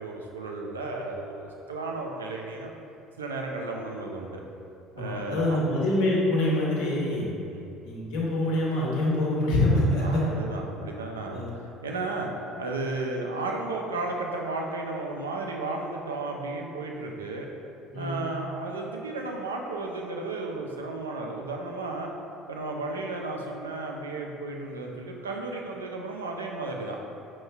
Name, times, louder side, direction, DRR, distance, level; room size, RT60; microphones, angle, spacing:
voice 1, 0.0-2.7 3.2-4.4 5.0-5.6 7.5-7.7 10.0-11.5 11.8-12.3 12.6-17.5 18.0-22.1 22.5-27.0, right 2 dB, 85° right, 0 dB, 0.4 m, -33 dB
voice 2, 5.0-7.2 7.8-10.2 11.3-11.5 17.9-18.2, left 1 dB, 70° left, -5 dB, 0.9 m, -25 dB
5.3 x 3.0 x 2.3 m, 2.6 s
hypercardioid pair, 60°, 0 cm